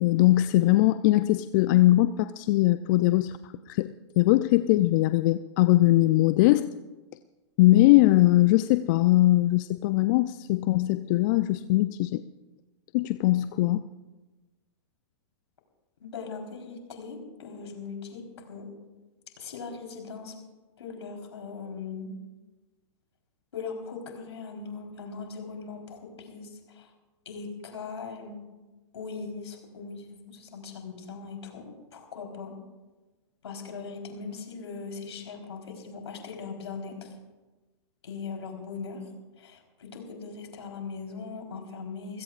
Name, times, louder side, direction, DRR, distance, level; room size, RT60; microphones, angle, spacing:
voice 1, 0.0-3.4 3.7-6.7 7.6-12.2 12.9-13.9, left 17 dB, 45° left, 12 dB, 0.5 m, -21 dB
voice 2, 16.0-18.7 19.4-20.3 20.8-22.1 23.5-26.9 27.3-28.4 28.9-32.5 33.4-37.1 38.0-39.0 39.4-42.2, left 5 dB, 70° left, 2 dB, 4.0 m, -39 dB
28.0 x 16.5 x 2.5 m, 1.2 s
hypercardioid pair, 110°, 15 cm